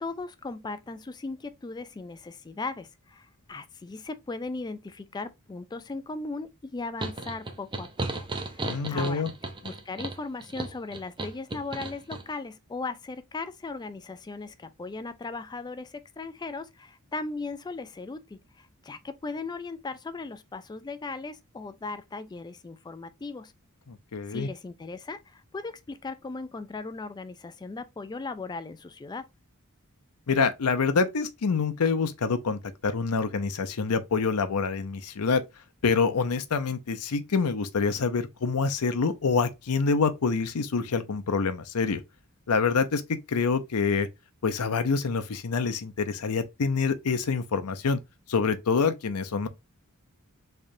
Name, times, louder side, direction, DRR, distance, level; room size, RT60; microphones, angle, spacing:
voice 1, 0.0-8.3 8.5-9.2 9.6-23.5 24.3-29.3, left 3 dB, 20° left, 0.3 m, -37 dB
sound 1, 7.0-12.2, right 2 dB, 20° right, 0.6 m, -35 dB
voice 2, 8.6-9.3 23.9-24.5 30.3-35.4 35.8-42.0 42.5-44.1 44.4-48.0 48.3-49.5, left 4 dB, 80° left, 0.6 m, -26 dB
3.8 x 3.3 x 2.6 m
head